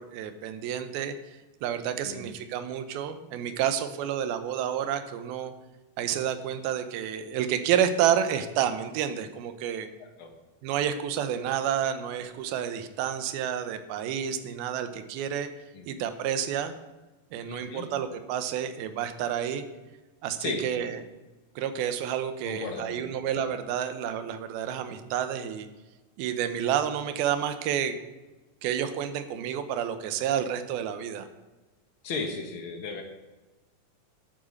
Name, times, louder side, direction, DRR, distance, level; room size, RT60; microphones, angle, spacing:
voice 1, 0.0-5.5 6.0-9.9 10.6-15.5 15.9-16.7 17.3-19.6 20.2-21.0 21.6-25.7 26.2-28.0 28.6-31.3, right 9 dB, 85° right, 10 dB, 2.8 m, -30 dB
voice 2, 10.0-10.3 15.7-15.8 17.5-17.9 20.4-20.6 22.5-23.1 32.0-33.0, left 4 dB, 60° left, 4 dB, 1.4 m, -35 dB
11.0 x 9.1 x 6.5 m, 1.1 s
omnidirectional pair, 4.3 m